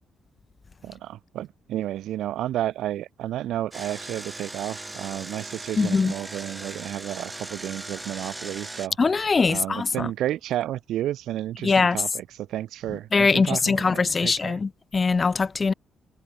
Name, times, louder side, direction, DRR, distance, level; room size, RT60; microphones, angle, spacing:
voice 1, 0.8-9.0 9.5-14.6, right 13 dB, 90° right, 3.3 m, -31 dB
Engine, 3.7-8.9, right 2 dB, 15° right, 5.7 m, -38 dB
voice 2, 5.8-6.1 9.0-9.9 11.6-12.0 13.1-15.7, left 4 dB, 30° left, 0.4 m, -22 dB
cardioid pair, 130°, 0 cm